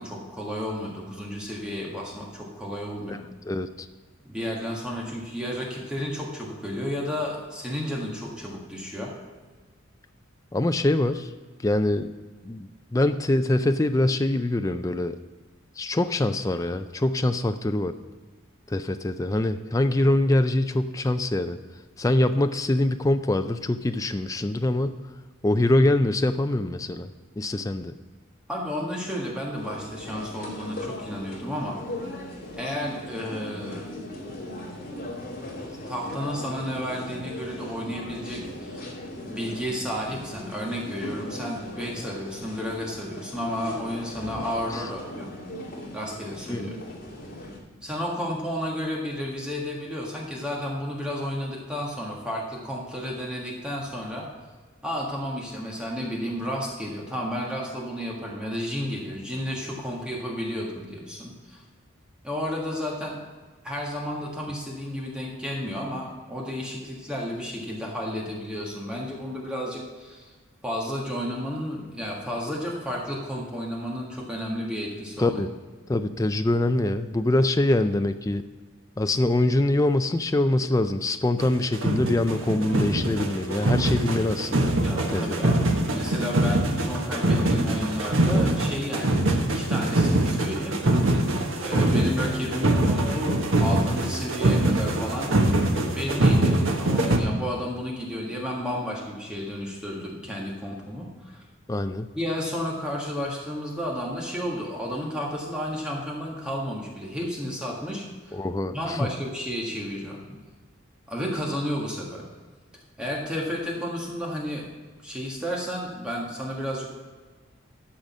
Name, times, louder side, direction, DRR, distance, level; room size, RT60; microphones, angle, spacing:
voice 1, 0.0-3.2 4.2-9.1 28.5-31.8 32.5-33.9 35.7-38.9 39.3-45.3 45.9-46.8 47.8-54.3 54.8-61.6 62.2-63.2 63.6-70.3 70.6-75.4 84.8-89.2 89.5-91.3 91.6-95.4 95.8-101.4 102.1-108.4 108.7-110.4 111.1-112.2 113.0-114.6 115.0-116.9, equal, 5° right, -3 dB, 1.6 m, -32 dB
voice 2, 10.5-11.3 11.6-12.1 12.5-15.1 15.8-17.9 18.7-21.6 22.0-25.0 25.4-27.1 27.4-27.9 44.7-44.8 46.5-46.7 75.2-75.5 75.9-78.4 79.0-84.7 85.1-85.7 91.8-92.1 101.7-102.1 108.3-109.1, left 1 dB, 15° left, 8 dB, 0.4 m, -24 dB
sound 1, 29.5-47.6, left 1 dB, 45° left, 2.4 m, -38 dB
sound 2, 81.4-81.5 81.7-97.2, right 1 dB, 80° right, 1.4 m, -23 dB
13.0 x 5.1 x 7.3 m, 1.4 s
head